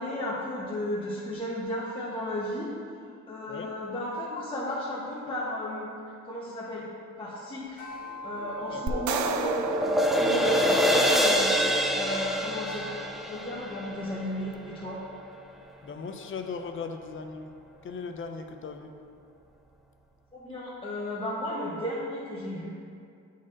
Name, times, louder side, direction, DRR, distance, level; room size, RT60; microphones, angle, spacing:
voice 1, 0.0-2.7 3.3-5.9 6.2-7.8 8.2-12.9 13.2-15.0 20.3-22.7, left 1 dB, 15° left, -7 dB, 1.0 m, -34 dB
sound 1, 7.8-12.4, right 1 dB, 75° left, 1.5 m, -44 dB
sound 2, 8.4-14.7, equal, ahead, 0.4 m, -26 dB
voice 2, 8.7-9.0 15.8-17.5 17.8-18.9, left 5 dB, 40° left, 6 dB, 0.6 m, -38 dB
sound 3, 8.9-11.2, right 7 dB, 70° right, 0.5 m, -34 dB
10.5 x 4.2 x 2.5 m, 2.4 s
cardioid pair, 90°, 30 cm